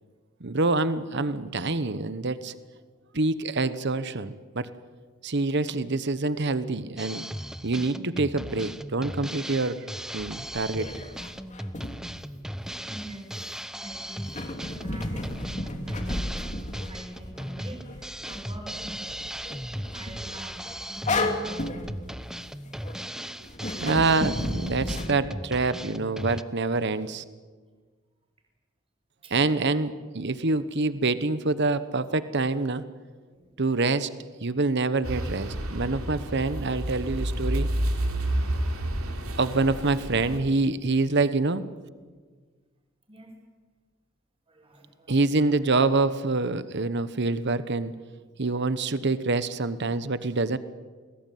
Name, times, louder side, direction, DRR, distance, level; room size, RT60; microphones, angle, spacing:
voice 1, 0.4-2.5 3.1-4.7 5.2-7.3 7.6-9.9 10.1-10.9 23.8-27.2 29.3-32.8 33.6-34.1 34.4-37.7 39.4-41.6 45.1-47.9 48.4-50.6, right 3 dB, 55° right, 13 dB, 1.1 m, -26 dB
Drum kit, 7.0-26.4, equal, 5° right, 0.7 m, -38 dB
sound 1, 10.2-12.7 14.2-23.0 23.4-25.1, left 2 dB, 35° left, 3.0 m, -34 dB
voice 2, 12.8-19.6 19.9-21.9 22.2-22.6 23.2-23.4 29.2-29.4 33.1-33.5 43.1-43.4 44.5-45.2, right 1 dB, 25° right, 1 dB, 6.6 m, -44 dB
sound 2, 35.0-40.4, right 1 dB, 85° right, 3.6 m, -29 dB
29.0 x 20.5 x 9.3 m, 1.5 s
head